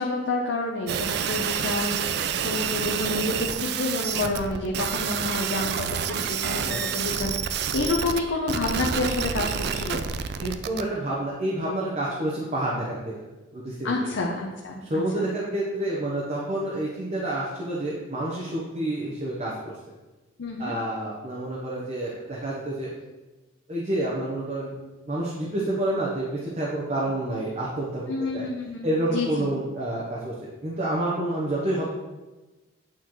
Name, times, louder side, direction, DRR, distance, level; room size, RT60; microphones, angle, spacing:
voice 1, 0.0-10.1 13.8-15.0 20.4-20.8 28.1-29.5, left 3 dB, 75° left, 0 dB, 0.7 m, -29 dB
sound 1, 0.9-8.2 8.5-10.8, right 7 dB, 55° right, 0.3 m, -28 dB
voice 2, 10.4-13.1 13.5-14.1 14.8-19.7 20.6-22.9 23.7-24.8 25.1-28.0 28.3-28.5 28.8-30.3 30.6-31.8, right 1 dB, 35° right, -5 dB, 0.9 m, -28 dB
8.6 x 4.4 x 3.0 m, 1.1 s
head